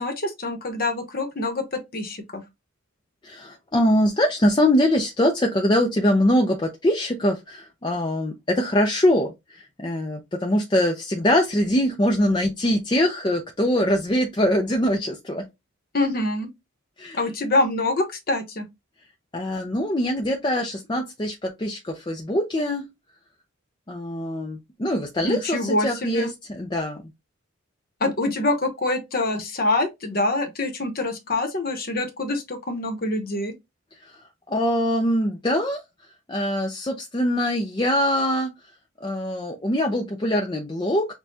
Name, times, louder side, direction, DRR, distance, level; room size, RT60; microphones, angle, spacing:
voice 1, 0.0-2.4 15.9-16.5 17.1-18.7 25.2-26.3 28.0-33.5, left 2 dB, 45° left, 0.9 m, -25 dB
voice 2, 3.2-15.5 17.0-17.2 19.3-22.8 23.9-27.0 34.0-35.8 36.3-38.5 39.0-41.1, left 1 dB, 20° left, 0.5 m, -23 dB
6.3 x 2.3 x 2.7 m
head